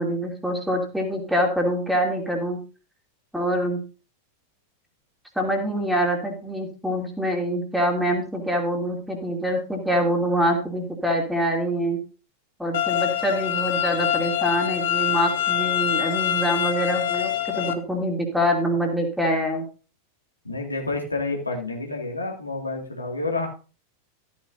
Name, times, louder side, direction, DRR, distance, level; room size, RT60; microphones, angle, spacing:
voice 1, 0.0-2.6 3.3-3.8 5.3-12.0 12.6-19.6, equal, ahead, 1 dB, 2.8 m, -25 dB
sound 1, 12.7-17.7, left 11 dB, 55° left, 1.1 m, -25 dB
voice 2, 20.4-23.5, left 3 dB, 80° left, 1 dB, 2.2 m, -29 dB
14.0 x 9.7 x 2.7 m, 0.36 s
figure-of-eight pair, 90°, 0 cm